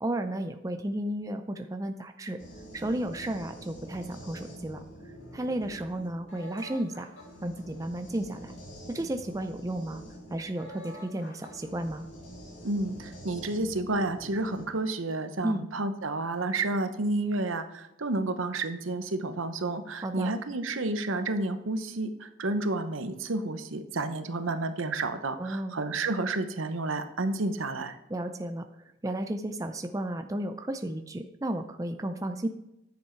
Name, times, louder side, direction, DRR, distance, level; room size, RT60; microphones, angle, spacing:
voice 1, 0.0-2.4 2.7-4.8 5.3-7.1 7.4-8.5 8.9-10.0 10.3-12.0 15.4-15.7 20.0-20.3 25.4-25.7 28.1-28.7 29.0-32.5, right 1 dB, 15° right, 7 dB, 0.4 m, -33 dB
sound 1, 2.4-14.7, equal, 65° left, 2.3 m, -47 dB
voice 2, 12.6-28.0, right 2 dB, 80° right, 9 dB, 0.9 m, -30 dB
10.5 x 7.2 x 4.5 m, 0.85 s
head